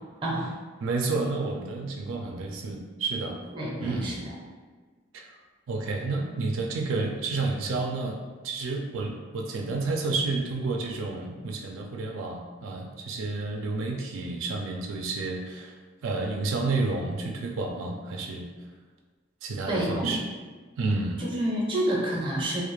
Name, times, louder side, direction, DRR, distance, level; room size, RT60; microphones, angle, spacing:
voice 1, 0.2-0.5 3.5-4.2 19.7-20.1 21.2-22.6, right 1 dB, 25° right, -4 dB, 0.5 m, -28 dB
voice 2, 0.8-3.4 3.8-4.3 5.1-5.3 5.7-15.8 16.0-18.5 19.4-20.2 20.8-21.2, right 3 dB, 85° right, 1 dB, 0.3 m, -30 dB
2.3 x 2.0 x 3.0 m, 1.4 s
head